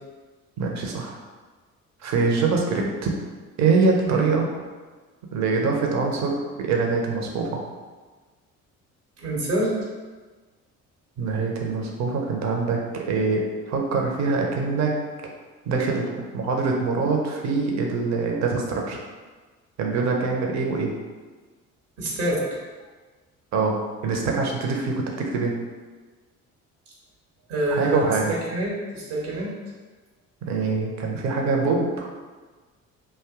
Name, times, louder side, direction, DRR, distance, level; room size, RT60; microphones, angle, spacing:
voice 1, 0.6-1.1 2.0-3.1 3.6-4.4 5.3-7.6 11.2-14.9 15.7-19.0 19.8-20.9 23.5-23.8 24.0-25.5 27.7-28.3 30.5-32.1, right 4 dB, 40° right, 0 dB, 0.7 m, -24 dB
voice 2, 9.2-9.7 22.0-22.4 27.5-28.0 28.5-29.5, right 1 dB, 65° right, -4 dB, 1.0 m, -26 dB
2.6 x 2.3 x 3.6 m, 1.4 s
figure-of-eight pair, 50°, 43 cm